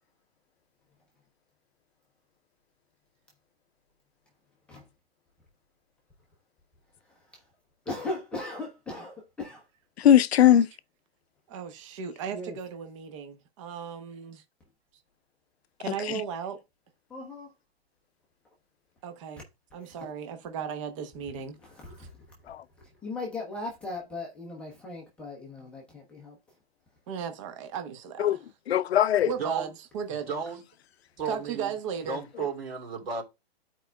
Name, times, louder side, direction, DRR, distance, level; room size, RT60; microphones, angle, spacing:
voice 1, 7.1-7.4 7.9-9.6 12.3-12.6 17.1-17.5 19.8-20.1 21.6-22.2 23.0-26.4, left 2 dB, 5° left, 0.6 m, -38 dB
voice 2, 10.0-10.7 16.1-16.2 22.5-22.6 28.2-28.4 28.7-29.3, left 10 dB, 80° left, 0.5 m, -20 dB
voice 3, 11.5-14.4 15.8-16.6 19.0-19.4 19.7-21.6 22.0-22.1 27.1-28.3 29.2-30.3 31.3-32.2, right 7 dB, 30° right, 0.9 m, -36 dB
voice 4, 30.1-30.6 31.2-31.7 32.0-33.2, right 5 dB, 70° right, 2.8 m, -33 dB
12.0 x 4.5 x 2.3 m
hypercardioid pair, 160°, 31 cm